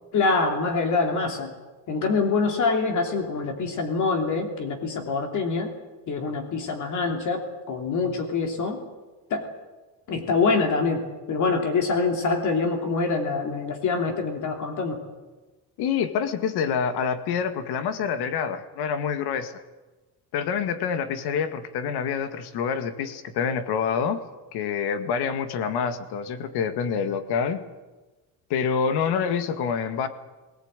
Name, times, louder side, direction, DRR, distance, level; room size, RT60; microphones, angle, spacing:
voice 1, 0.1-1.5 1.9-5.7 6.1-8.8 9.3-9.4 10.1-15.0, left 4 dB, 45° left, 4 dB, 3.0 m, -25 dB
voice 2, 15.8-19.5 20.3-24.2 24.5-27.6 28.5-30.1, left 6 dB, 70° left, 9 dB, 2.0 m, -27 dB
19.5 x 19.0 x 9.0 m, 1.2 s
cardioid pair, 165°, 40 cm